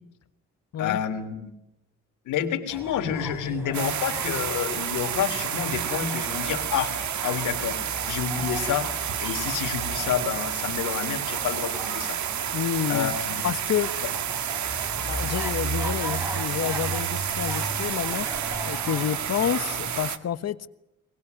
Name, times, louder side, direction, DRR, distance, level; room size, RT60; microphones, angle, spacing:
voice 1, 0.8-1.5 2.2-6.9 7.2-8.9 9.2-12.2 12.9-13.5, left 9 dB, 85° left, 3.3 m, -29 dB
sound 1, 2.7-20.0, right 1 dB, 10° right, 6.7 m, -37 dB
sound 2, 3.7-20.2, right 9 dB, 70° right, 1.9 m, -30 dB
voice 2, 12.5-13.2 13.4-13.9 15.1-18.3 18.6-20.7, left 9 dB, 55° left, 1.4 m, -29 dB
23.0 x 20.5 x 9.5 m
cardioid pair, 90°, 30 cm